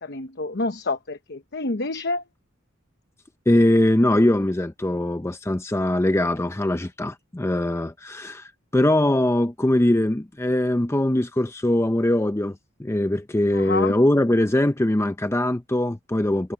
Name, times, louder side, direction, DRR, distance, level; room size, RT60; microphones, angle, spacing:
voice 1, 0.0-2.2 13.5-13.9, left 3 dB, 55° left, 1.0 m, -28 dB
voice 2, 3.5-16.5, left 1 dB, 15° left, 0.5 m, -22 dB
head